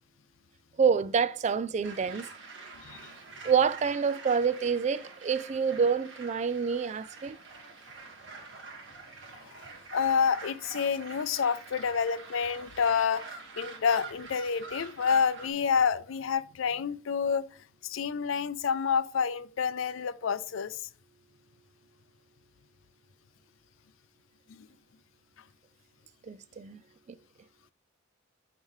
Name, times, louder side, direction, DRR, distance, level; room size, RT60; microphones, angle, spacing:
voice 1, 0.8-2.3 3.4-7.4 26.3-26.8, right 6 dB, 35° right, 0.3 m, -27 dB
sound 1, 1.8-15.5, right 4 dB, 70° right, 1.6 m, -46 dB
voice 2, 2.8-3.1 9.4-9.6 9.9-13.2 13.6-17.5 17.8-20.9 24.5-24.7, left 6 dB, 80° left, 0.5 m, -28 dB
6.6 x 5.4 x 3.1 m
head